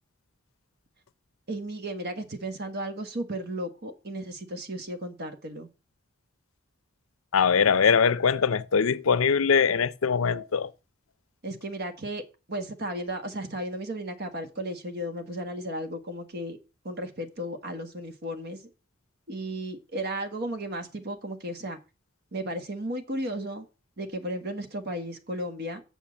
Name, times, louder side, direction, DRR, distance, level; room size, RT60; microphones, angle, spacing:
voice 1, 1.5-5.7 11.4-12.2 12.5-16.6 16.8-18.6 19.3-21.8 22.3-23.7 24.0-25.8, right 1 dB, 55° right, 1.5 m, -34 dB
voice 2, 7.3-10.7, left 6 dB, 90° left, 0.6 m, -22 dB
7.2 x 5.7 x 7.1 m
head